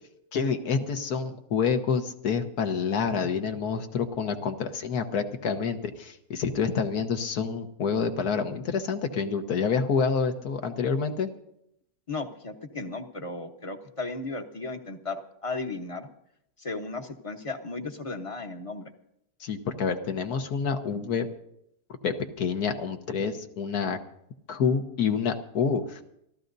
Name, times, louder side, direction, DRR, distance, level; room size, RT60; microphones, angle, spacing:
voice 1, 0.3-11.3 19.4-21.3 22.0-24.0 24.5-26.0, left 6 dB, 65° left, 7 dB, 1.6 m, -28 dB
voice 2, 12.1-16.1 16.6-18.9, left 3 dB, 25° left, 5 dB, 0.9 m, -35 dB
28.5 x 14.0 x 2.7 m, 0.77 s
omnidirectional pair, 1.8 m